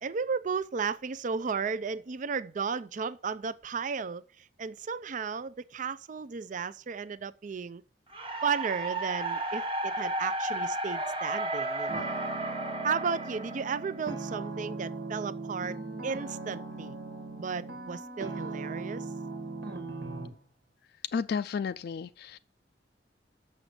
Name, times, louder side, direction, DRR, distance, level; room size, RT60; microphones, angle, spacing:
voice 1, 0.0-7.8 8.4-12.1 12.8-17.0 17.4-19.1, right 5 dB, 45° right, 0.4 m, -34 dB
sound 1, 8.1-14.3, right 2 dB, 30° right, 1.3 m, -33 dB
sound 2, 11.9-20.3, right 3 dB, 70° right, 1.6 m, -39 dB
voice 2, 21.1-22.4, left 5 dB, 65° left, 0.3 m, -32 dB
6.5 x 6.2 x 7.5 m
head